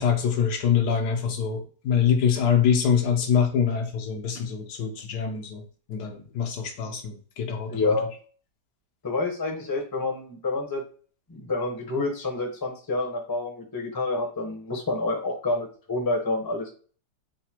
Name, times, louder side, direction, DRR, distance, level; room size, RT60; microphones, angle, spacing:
voice 1, 0.0-5.6 5.9-7.8, left 7 dB, 75° left, 4 dB, 1.3 m, -24 dB
voice 2, 7.7-8.1 9.0-10.8 11.3-16.7, left 2 dB, 20° left, 2 dB, 0.6 m, -28 dB
3.8 x 2.1 x 4.4 m, 0.41 s
omnidirectional pair, 1.8 m